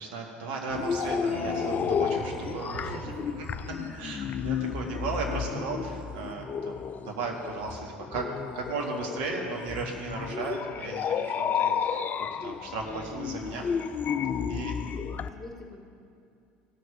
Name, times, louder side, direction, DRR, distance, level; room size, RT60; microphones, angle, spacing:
voice 1, 0.0-3.5 3.9-8.3 8.5-12.0 12.4-13.7 14.5-14.7, right 3 dB, 60° right, 1 dB, 1.8 m, -35 dB
sound 1, 0.7-15.3, left 7 dB, 30° left, 0.4 m, -32 dB
sound 2, 1.0-4.5, right 1 dB, 90° right, 2.6 m, -40 dB
voice 2, 14.8-15.8, left 2 dB, 5° left, 0 dB, 2.1 m, -46 dB
16.0 x 6.4 x 6.2 m, 2.5 s
figure-of-eight pair, 70°, 6 cm